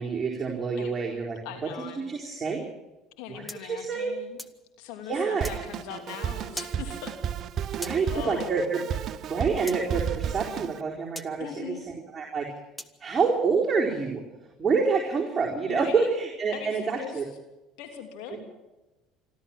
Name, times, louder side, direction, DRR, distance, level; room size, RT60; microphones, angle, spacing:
voice 1, 0.0-1.4 1.8-2.6 3.3-4.1 5.0-5.5 7.7-8.8 9.3-11.8 12.1-12.5 13.0-17.2 18.3-18.4, right 5 dB, 20° right, -4 dB, 4.4 m, -27 dB
voice 2, 1.4-2.1 3.2-4.4 4.8-7.1 7.9-8.5 11.4-11.9 15.7-16.1 16.5-17.2 17.8-18.4, left 9 dB, 70° left, 5 dB, 3.1 m, -40 dB
sound 1, 3.5-4.6 5.4-5.6 6.6-6.8 7.8-8.0 9.7-9.8 11.2-11.3 12.8-13.0, equal, ahead, 1.4 m, -39 dB
Drum kit, 5.4-10.8, right 9 dB, 50° right, 0.7 m, -33 dB
27.0 x 13.0 x 7.5 m, 1.0 s
hypercardioid pair, 70°, 0 cm